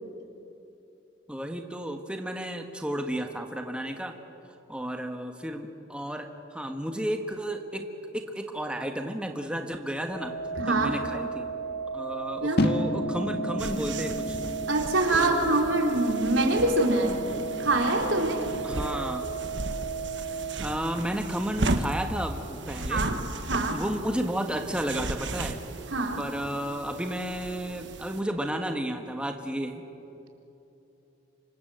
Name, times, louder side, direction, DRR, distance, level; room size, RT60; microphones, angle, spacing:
voice 1, 1.3-4.1 4.7-7.9 8.1-10.3 10.7-11.5 11.9-14.4 15.1-15.6 18.6-19.3 20.6-23.0 23.7-25.6 26.2-29.9, right 1 dB, 5° right, 4 dB, 1.5 m, -32 dB
sound 1, 10.1-20.5, right 5 dB, 80° left, 5.4 m, -35 dB
voice 2, 10.6-11.0 12.4-12.7 14.7-17.2 17.6-18.4 22.9-23.2 23.4-23.8 25.9-26.2, right 2 dB, 85° right, 2 dB, 4.0 m, -25 dB
sound 2, 12.6-18.8, left 1 dB, 55° left, 1.8 m, -33 dB
sound 3, 13.6-28.2, right 2 dB, 65° right, 1.6 m, -36 dB
27.5 x 25.5 x 7.9 m, 3.0 s
head